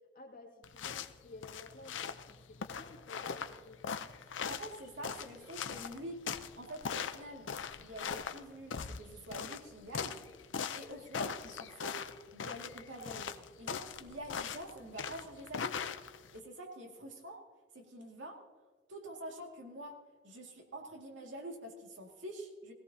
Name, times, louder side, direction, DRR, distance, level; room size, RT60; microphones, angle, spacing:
voice 1, 0.1-3.8, left 2 dB, 50° left, 0 dB, 2.3 m, -53 dB
sound 1, 0.6-16.4, left 6 dB, 85° left, 0.6 m, -41 dB
voice 2, 4.5-6.2 6.6-7.5 7.8-10.2 10.7-12.0 12.3-13.3 13.6-15.8 16.3-17.4 17.7-18.4 18.9-22.7, right 1 dB, 85° right, 1 dB, 2.2 m, -46 dB
19.5 x 16.5 x 2.8 m, 1.4 s
head